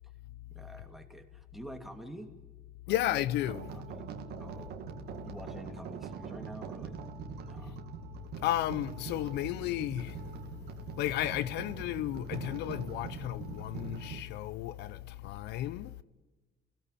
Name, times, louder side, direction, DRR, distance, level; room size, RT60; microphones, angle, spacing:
voice 1, 0.5-2.3 2.9-3.2 3.5-4.1 4.4-4.8 5.2-7.0 7.4-7.8, right 1 dB, ahead, 2.8 m, -48 dB
voice 2, 2.9-3.7 7.6-7.7 8.4-10.4 10.9-16.0, left 13 dB, 80° left, 0.7 m, -33 dB
sound 1, 3.4-14.2, right 7 dB, 75° right, 2.3 m, -43 dB
29.5 x 17.5 x 9.2 m
cardioid pair, 110°, 17 cm